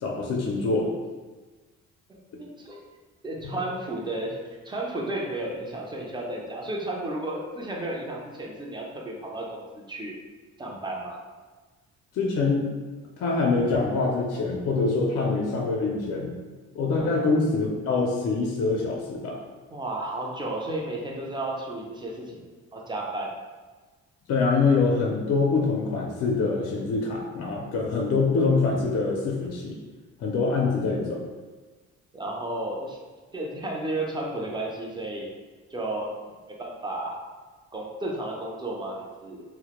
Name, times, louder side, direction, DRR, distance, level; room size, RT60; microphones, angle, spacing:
voice 1, 0.0-0.9 12.1-12.7 13.2-16.4 16.7-19.4 24.3-29.8 30.2-31.2, left 3 dB, 55° left, -1 dB, 0.4 m, -24 dB
voice 2, 2.4-2.8 3.2-4.4 4.6-10.1 10.6-11.2 16.9-17.1 19.7-22.5 22.7-23.3 32.1-33.0 33.3-35.3 35.7-36.1 36.5-37.2 37.7-39.4, right 1 dB, 15° right, -1 dB, 0.4 m, -33 dB
2.1 x 2.0 x 2.9 m, 1.3 s
cardioid pair, 90°, 30 cm